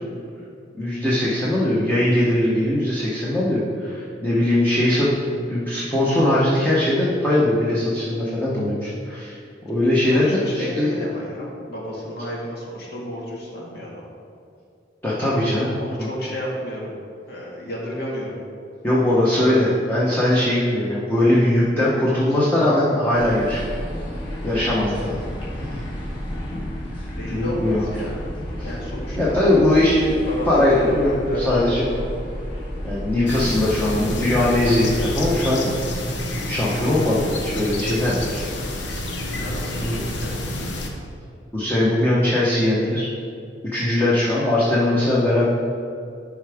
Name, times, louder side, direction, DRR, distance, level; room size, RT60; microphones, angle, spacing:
voice 1, 0.7-5.1 5.5-10.9 15.0-15.7 16.0-16.1 18.8-23.7 24.4-25.2 27.3-27.8 28.6-28.7 29.2-30.2 30.5-31.9 32.8-35.7 36.4-38.5 38.9-39.0 39.8-40.0 41.5-43.1 43.7-45.4, left 1 dB, 10° left, -8 dB, 1.1 m, -20 dB
voice 2, 9.9-14.0 15.5-16.9 17.3-18.4 22.5-22.6 25.0-25.2 27.1-28.2 28.6-29.7 30.3-32.1 33.6-34.0 39.2-40.3, left 1 dB, 60° left, -3 dB, 1.8 m, -32 dB
sound 1, 23.1-35.4, equal, 30° left, 1.8 m, -32 dB
sound 2, 33.3-40.9, left 1 dB, 90° left, 0.9 m, -29 dB
11.5 x 4.8 x 3.5 m, 2.5 s
head